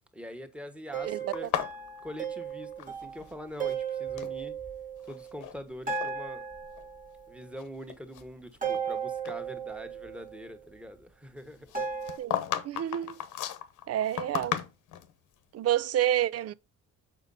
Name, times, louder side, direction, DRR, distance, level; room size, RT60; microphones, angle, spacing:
voice 1, 0.1-1.5 2.0-4.6 5.0-6.4 7.3-11.7, equal, 5° right, 1.4 m, -43 dB
sound 1, 0.9-5.5 5.9-7.5 8.6-10.6 11.7-12.2, right 6 dB, 25° right, 1.7 m, -36 dB
voice 2, 1.0-1.3 12.2-13.1 13.9-14.6 15.5-16.5, right 12 dB, 55° right, 0.5 m, -29 dB
sound 2, 1.3-3.3 3.6-4.4 5.0-5.6 5.9-6.1 6.8-6.9 7.4-8.9 9.3-9.4 11.7-15.1, left 11 dB, 85° left, 1.1 m, -35 dB
7.1 x 5.2 x 4.0 m
cardioid pair, 90°, 30 cm